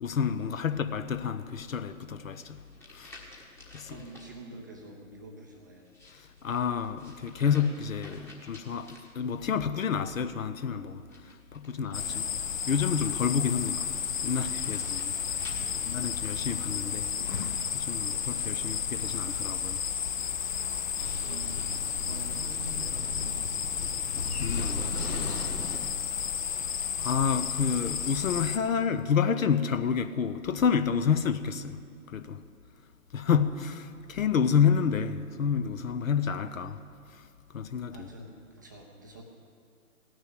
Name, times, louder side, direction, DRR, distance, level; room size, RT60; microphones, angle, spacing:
voice 1, 0.0-2.6 2.9-3.2 3.7-3.9 6.1-11.0 11.5-12.2 12.7-13.9 14.2-15.1 15.9-17.1 17.7-19.8 24.4-24.9 27.0-31.8 32.1-32.4 33.1-36.8 37.5-38.1, left 7 dB, 65° left, 0.8 m, -29 dB
sound 1, 2.3-4.3 5.7-9.6 11.0-12.3 14.2-16.6 17.3-18.4, left 1 dB, 5° left, 1.1 m, -52 dB
voice 2, 3.9-5.9 11.7-12.4 15.2-15.8 20.8-24.1 24.8-26.0 26.6-26.7 31.1-31.2 37.9-39.2, right 2 dB, 15° right, 0.5 m, -47 dB
sound 2, 11.9-28.6, left 7 dB, 35° left, 0.6 m, -32 dB
sound 3, 21.0-25.8, left 2 dB, 90° left, 2.1 m, -39 dB
17.0 x 6.4 x 8.2 m
figure-of-eight pair, 140°, 43 cm